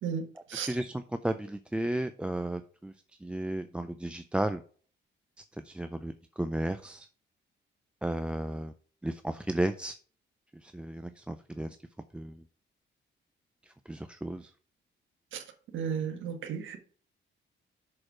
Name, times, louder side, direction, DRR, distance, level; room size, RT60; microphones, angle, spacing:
voice 1, 0.0-0.7 15.3-15.4 15.7-16.8, right 7 dB, 85° right, 1.5 m, -34 dB
voice 2, 0.5-2.9 3.2-4.6 5.5-7.1 8.0-8.7 9.0-10.0 10.5-11.8 12.1-12.4 13.6-14.5, right 1 dB, 5° right, 0.4 m, -34 dB
6.5 x 4.8 x 6.0 m
cardioid pair, 130°, 20 cm